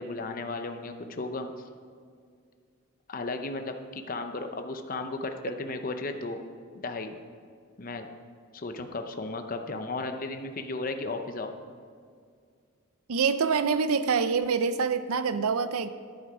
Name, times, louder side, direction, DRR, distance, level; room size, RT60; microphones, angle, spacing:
voice 1, 0.0-1.7 3.1-6.4 6.7-7.2 7.8-8.1 8.5-11.5, left 3 dB, 40° left, 6 dB, 0.6 m, -35 dB
voice 2, 13.1-15.9, right 5 dB, 80° right, 12 dB, 0.6 m, -26 dB
11.0 x 9.5 x 4.9 m, 2.2 s
head